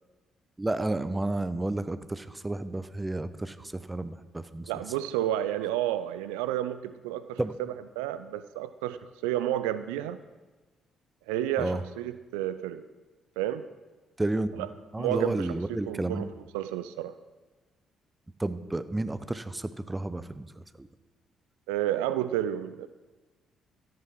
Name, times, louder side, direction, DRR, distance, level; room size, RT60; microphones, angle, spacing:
voice 1, 0.6-4.7 7.4-7.5 11.6-11.8 14.2-16.3 18.4-20.9, right 2 dB, 15° right, 13 dB, 0.8 m, -31 dB
voice 2, 4.7-7.4 8.0-9.0 9.2-10.2 11.3-12.8 13.4-13.6 14.6-14.7 15.0-15.5 15.9-16.3 16.5-17.1 21.7-22.9, right 12 dB, 70° right, 13 dB, 0.4 m, -30 dB
13.0 x 10.0 x 6.0 m, 1.2 s
figure-of-eight pair, 45°, 0 cm